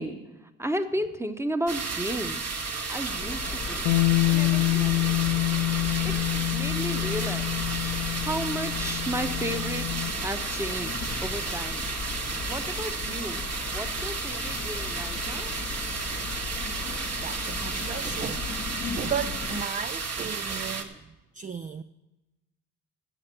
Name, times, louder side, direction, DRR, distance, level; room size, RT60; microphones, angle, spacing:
voice 1, 0.0-2.5 2.9-3.9 4.3-5.2 6.0-7.6 8.2-11.9 12.4-15.6 20.2-20.3 20.9-21.0, right 1 dB, 5° right, 1.0 m, -34 dB
sound 1, 1.7-20.8, right 4 dB, 40° right, 1.4 m, -33 dB
sound 2, 2.6-19.6, left 6 dB, 25° left, 0.6 m, -37 dB
Bass guitar, 3.9-10.1, left 21 dB, 85° left, 0.7 m, -26 dB
voice 2, 16.8-20.9 21.3-21.8, right 7 dB, 20° right, 0.4 m, -36 dB
11.0 x 7.5 x 7.5 m
hypercardioid pair, 60°, 38 cm